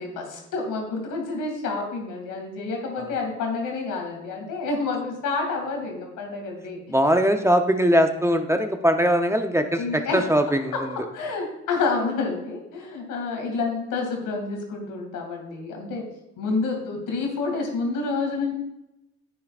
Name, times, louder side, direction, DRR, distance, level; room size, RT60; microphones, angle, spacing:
voice 1, 0.0-6.8 9.8-10.3 10.7-16.1 16.4-18.5, left 3 dB, 90° left, 1 dB, 2.4 m, -29 dB
voice 2, 6.9-10.7, equal, 10° right, 6 dB, 0.7 m, -21 dB
10.0 x 8.5 x 2.4 m, 0.89 s
cardioid pair, 90°, 30 cm